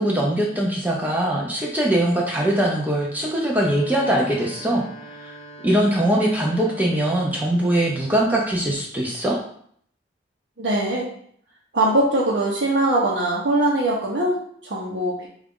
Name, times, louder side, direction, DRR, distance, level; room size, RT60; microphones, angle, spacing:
voice 1, 0.0-4.8 5.2-5.3 5.6-9.4, right 1 dB, 10° right, -3 dB, 0.5 m, -21 dB
sound 1, 3.4-7.4, right 2 dB, 35° left, 0.8 m, -43 dB
voice 2, 10.6-11.1 11.7-15.3, right 1 dB, 70° right, -7 dB, 0.8 m, -21 dB
3.9 x 2.4 x 3.6 m, 0.62 s
head